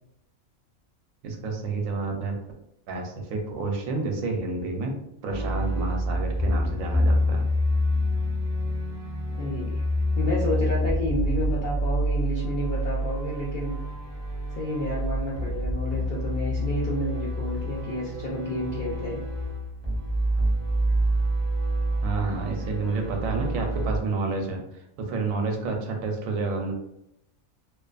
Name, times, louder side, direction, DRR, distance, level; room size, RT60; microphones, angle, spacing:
voice 1, 1.2-2.4 2.9-4.9 5.2-7.4 22.0-24.6 25.0-26.7, right 3 dB, 85° right, 2 dB, 1.0 m, -29 dB
sound 1, 5.3-24.0, equal, 15° left, 0.5 m, -27 dB
voice 2, 9.4-9.8 10.1-13.8 14.5-19.2, equal, 65° left, -6 dB, 0.5 m, -30 dB
2.4 x 2.3 x 2.4 m, 0.79 s
omnidirectional pair, 1.4 m